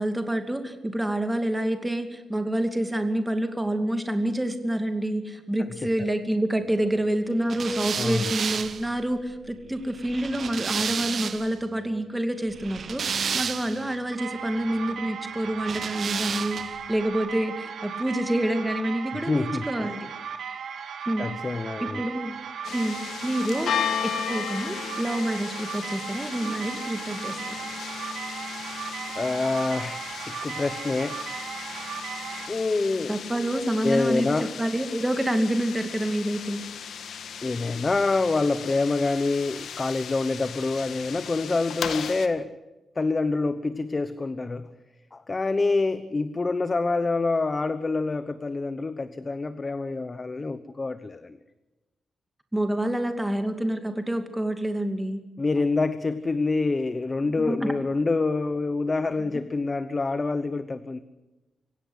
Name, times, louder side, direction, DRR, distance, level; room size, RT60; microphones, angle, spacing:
voice 1, 0.0-20.0 21.1-21.3 22.0-22.4 22.7-23.7 24.0-27.6 33.1-36.6 52.5-55.2 57.2-57.7, right 1 dB, 10° right, 6 dB, 2.5 m, -27 dB
sound 1, 7.5-11.6 12.5-14.0 15.6-16.9, right 6 dB, 55° right, 1.2 m, -31 dB
voice 2, 8.0-8.3 19.3-20.0 21.2-22.0 29.1-31.2 32.5-33.1 33.8-34.5 37.4-42.5 43.0-44.7 45.1-51.4 55.4-61.0, left 3 dB, 25° left, 12 dB, 1.0 m, -26 dB
sound 2, 14.1-32.5, right 7 dB, 90° right, 3.1 m, -36 dB
sound 3, 22.6-42.3, left 8 dB, 80° left, 1.7 m, -36 dB
26.0 x 16.5 x 8.1 m, 1.1 s
wide cardioid pair, 130°, 0 cm